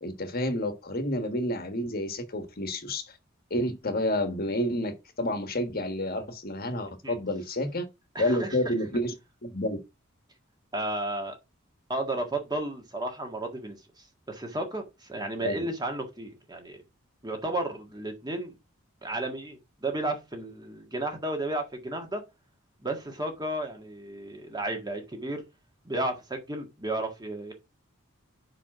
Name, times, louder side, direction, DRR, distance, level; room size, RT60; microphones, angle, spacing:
voice 1, 0.0-3.1 3.5-7.8 8.2-9.1 9.4-9.8 15.4-15.7, left 1 dB, 50° left, 1.4 m, -29 dB
voice 2, 8.2-8.7 10.7-11.4 11.9-16.8 17.2-18.5 19.0-22.2 22.8-25.4 25.9-27.5, right 1 dB, 20° right, 1.7 m, -33 dB
5.3 x 4.9 x 6.0 m
head